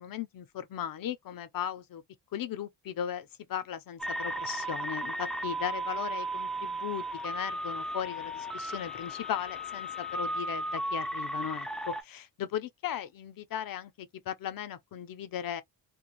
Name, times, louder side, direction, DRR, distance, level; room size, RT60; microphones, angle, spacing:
voice 1, 0.0-2.0 2.3-15.6, left 10 dB, 50° left, 0.5 m, -37 dB
sound 1, 4.0-12.0, right 1 dB, ahead, 0.3 m, -35 dB
2.3 x 2.2 x 2.9 m
cardioid pair, 110°, 44 cm